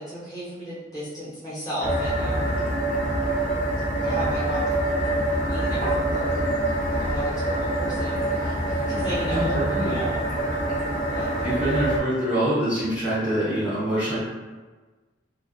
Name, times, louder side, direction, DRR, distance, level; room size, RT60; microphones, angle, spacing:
voice 1, 0.0-2.5 4.0-4.6 5.5-6.5 7.0-10.2 11.1-11.7, equal, 20° left, -10 dB, 0.8 m, -34 dB
sound 1, 1.8-12.0, right 1 dB, 45° left, 0.6 m, -25 dB
voice 2, 9.3-10.0 11.4-14.2, right 1 dB, 10° right, -12 dB, 0.7 m, -25 dB
2.3 x 2.2 x 2.4 m, 1.3 s
head